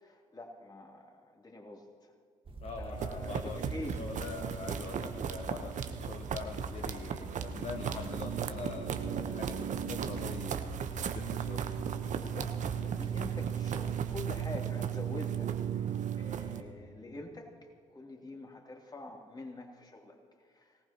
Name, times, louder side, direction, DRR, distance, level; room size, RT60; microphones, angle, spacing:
voice 1, 0.0-2.1 2.8-4.3 7.3-7.4 12.1-15.9 16.2-20.8, left 1 dB, 25° left, 1 dB, 3.1 m, -46 dB
sound 1, 2.5-14.5, right 2 dB, 35° right, 1.6 m, -46 dB
voice 2, 2.6-11.7, left 4 dB, 45° left, 4 dB, 1.2 m, -44 dB
sound 2, 2.9-16.6, right 8 dB, 50° right, 1.0 m, -36 dB
23.5 x 18.0 x 3.0 m, 2.2 s
hypercardioid pair, 50°, 16 cm